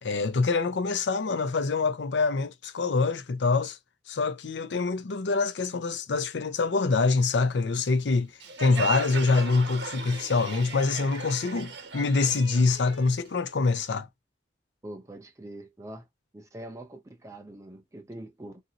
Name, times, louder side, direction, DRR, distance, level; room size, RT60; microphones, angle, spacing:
voice 1, 0.0-3.8 4.1-8.3 8.6-14.1, left 4 dB, 80° left, 0.5 m, -25 dB
Crowd, 8.4-13.8, right 4 dB, 80° right, 1.0 m, -37 dB
voice 2, 14.8-16.1 16.3-18.6, right 1 dB, 15° right, 0.5 m, -43 dB
2.7 x 2.6 x 2.7 m
head